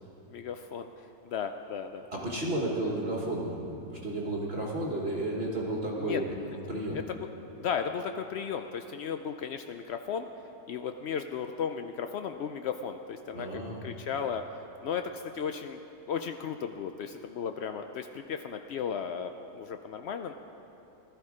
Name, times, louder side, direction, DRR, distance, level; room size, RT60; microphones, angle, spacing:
voice 1, 0.3-0.9 1.2-2.1 6.0-6.2 6.9-7.3 7.6-10.3 10.7-14.4 14.8-15.8 16.1-20.3, left 7 dB, 90° left, 7 dB, 0.5 m, -35 dB
voice 2, 2.1-7.0 13.3-13.9, right 1 dB, 40° right, -2 dB, 1.4 m, -33 dB
16.0 x 12.5 x 4.9 m, 3.0 s
omnidirectional pair, 1.7 m